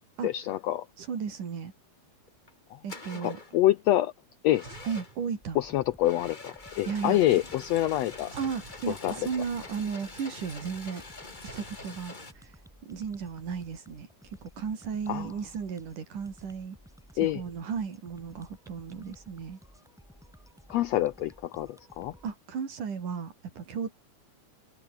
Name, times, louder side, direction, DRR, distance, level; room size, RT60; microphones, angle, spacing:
voice 1, 0.2-0.9 2.7-2.8 3.2-4.1 4.4-4.6 5.5-8.3 8.9-9.2 15.1-15.3 17.2-17.4 20.7-22.1, left 14 dB, 80° left, 1.5 m, -26 dB
voice 2, 1.0-1.7 2.8-3.4 4.9-5.6 6.9-7.2 8.3-11.0 11.6-12.5 12.8-14.1 14.4-16.8 17.1-19.6 22.2-23.9, right 6 dB, 70° right, 5.2 m, -35 dB
sound 1, 2.3-2.5 2.9-3.6 4.5-5.3 6.0-12.3, left 3 dB, 20° left, 1.7 m, -45 dB
sound 2, 4.6-5.9 8.3-9.6 11.4-12.7, right 4 dB, 55° right, 6.2 m, -51 dB
sound 3, 5.4-22.3, equal, ahead, 7.6 m, -55 dB
omnidirectional pair, 3.7 m